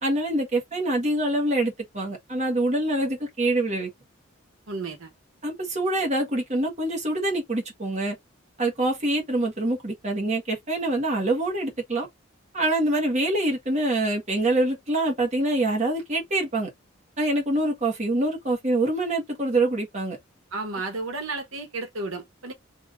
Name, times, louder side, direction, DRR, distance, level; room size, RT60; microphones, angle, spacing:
voice 1, 0.0-3.9 5.4-8.2 8.6-12.1 12.5-16.7 17.2-20.2, right 1 dB, 35° right, 1.5 m, -25 dB
voice 2, 4.7-5.1 20.5-22.5, right 3 dB, 90° right, 1.1 m, -32 dB
3.5 x 2.7 x 3.6 m
head